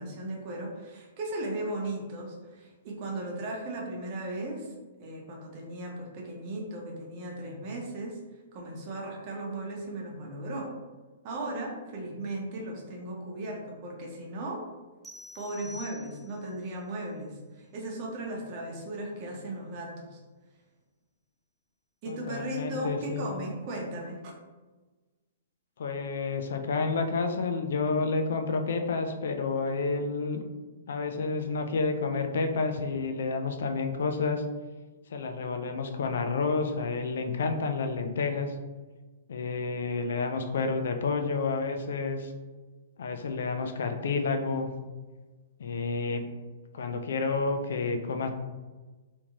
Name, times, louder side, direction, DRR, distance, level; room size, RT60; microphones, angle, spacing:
voice 1, 0.0-4.7 5.0-8.2 8.5-10.7 11.2-14.6 15.3-20.2 22.0-24.3, right 1 dB, 40° right, -1 dB, 0.8 m, -36 dB
sound 1, 15.0-16.6, left 2 dB, 5° right, 0.3 m, -47 dB
voice 2, 22.1-23.3 25.8-30.4 30.9-34.4 35.1-38.5 39.3-42.3 43.0-44.7 45.6-46.2 46.7-48.3, left 4 dB, 70° left, 6 dB, 0.4 m, -30 dB
2.9 x 2.6 x 2.4 m, 1.2 s
hypercardioid pair, 135°, 0 cm